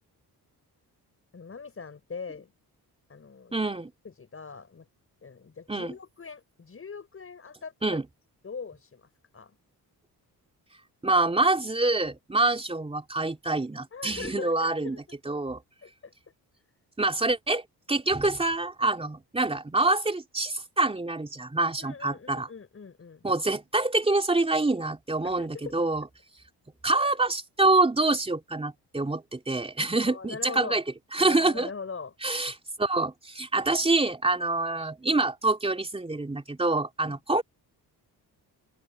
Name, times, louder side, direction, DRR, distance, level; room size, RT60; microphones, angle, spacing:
voice 1, 1.3-2.5 3.1-3.5 4.0-4.8 5.2-7.7 8.4-9.1 9.3-9.6 13.9-15.0 15.8-16.1 21.8-23.2 25.4-25.7 30.0-30.8 31.2-32.1 37.0-37.2, left 5 dB, 35° left, 6.3 m, -41 dB
voice 2, 3.5-3.9 5.7-5.9 7.8-8.1 11.0-15.0 15.3-15.6 17.0-22.5 23.2-26.1 26.8-30.8 31.1-31.7 32.2-37.4, right 2 dB, 15° right, 3.5 m, -26 dB
open air
cardioid pair, 110°, 37 cm